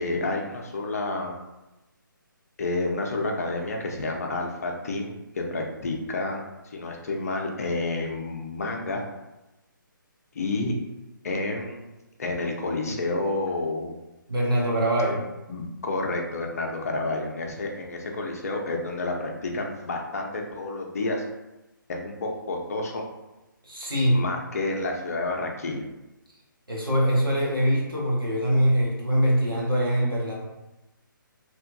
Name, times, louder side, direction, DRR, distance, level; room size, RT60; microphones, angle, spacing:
voice 1, 0.0-1.4 2.6-9.0 10.3-10.7 11.2-11.8 12.2-14.0 15.1-15.2 15.5-21.3 21.9-23.0 24.1-25.9, left 2 dB, 45° left, 1 dB, 0.5 m, -30 dB
voice 2, 14.3-15.2 23.6-24.2 26.7-30.3, equal, 90° right, -4 dB, 1.1 m, -23 dB
2.9 x 2.5 x 2.5 m, 1.0 s
figure-of-eight pair, 140°, 11 cm